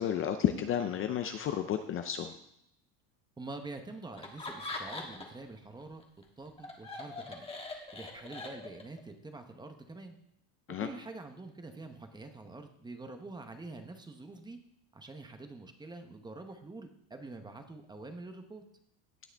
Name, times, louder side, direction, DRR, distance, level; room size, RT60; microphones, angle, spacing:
voice 1, 0.0-2.3 10.7-10.9, left 9 dB, 30° left, 8 dB, 0.6 m, -31 dB
voice 2, 3.4-6.0 6.4-7.5 7.9-10.2 10.8-14.6 14.9-18.6, right 2 dB, 10° right, 6 dB, 0.9 m, -46 dB
Laughter, 4.2-5.5 5.8-9.0, left 3 dB, 15° left, 1.4 m, -42 dB
17.0 x 6.3 x 3.5 m, 0.76 s
cardioid pair, 145°, 40 cm